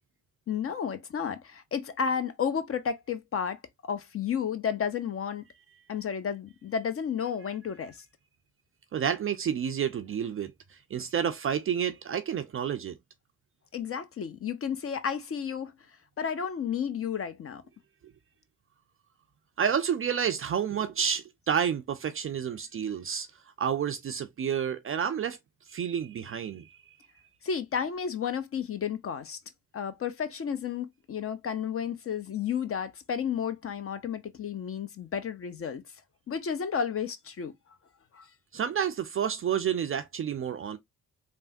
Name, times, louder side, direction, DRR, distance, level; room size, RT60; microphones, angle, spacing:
voice 1, 0.5-5.4 5.9-8.0 13.7-15.7 16.2-17.6 27.4-29.4 29.7-35.8 36.3-37.5 38.1-38.3, left 7 dB, 30° left, 0.5 m, -32 dB
voice 2, 8.9-13.0 19.6-23.3 23.6-25.4 25.7-26.8 38.5-40.8, right 8 dB, 30° right, 0.4 m, -30 dB
3.3 x 2.1 x 2.6 m
hypercardioid pair, 45°, 44 cm